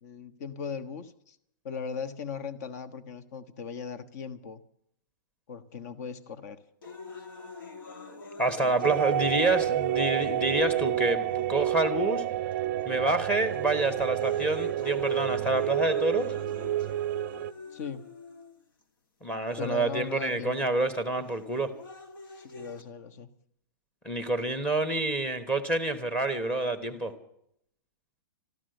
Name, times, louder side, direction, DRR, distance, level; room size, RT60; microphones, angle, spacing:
voice 1, 0.0-1.4 1.6-4.6 5.5-6.6 17.7-18.0 19.6-20.7 22.4-23.3, left 6 dB, 50° left, 11 dB, 1.4 m, -38 dB
sound 1, 6.8-10.8 11.6-11.7 12.5-12.8 13.3-18.8 19.8-19.9 21.3-22.8, left 4 dB, 80° left, 2.4 m, -45 dB
voice 2, 8.4-12.2 12.8-16.3 19.2-21.7 24.0-27.1, right 2 dB, 10° left, 8 dB, 1.3 m, -28 dB
sound 2, 8.8-17.5, right 13 dB, 45° right, 0.5 m, -29 dB
13.5 x 12.5 x 7.9 m, 0.72 s
hypercardioid pair, 155°, 11 cm